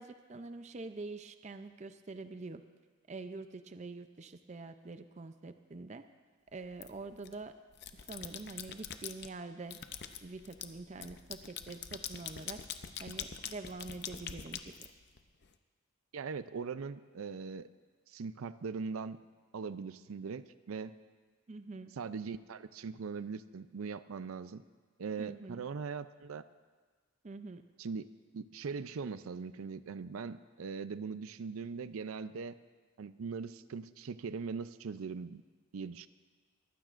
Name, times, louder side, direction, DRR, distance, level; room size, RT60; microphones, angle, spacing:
voice 1, 0.0-2.6 3.1-6.0 6.5-7.5 7.9-9.8 10.2-12.6 13.0-14.9 21.5-21.9 25.2-25.6 27.2-27.6, right 3 dB, 35° right, 9 dB, 0.5 m, -45 dB
sound 1, 6.8-7.3 7.7-9.3 9.7-15.5, left 8 dB, 50° left, 0.6 m, -44 dB
voice 2, 16.1-17.7 18.1-19.2 19.5-20.9 22.0-24.6 25.0-26.4 27.8-28.1 28.3-32.6 33.0-35.4 35.7-36.1, right 5 dB, 85° right, 13 dB, 0.5 m, -40 dB
22.0 x 15.0 x 2.5 m, 1.4 s
head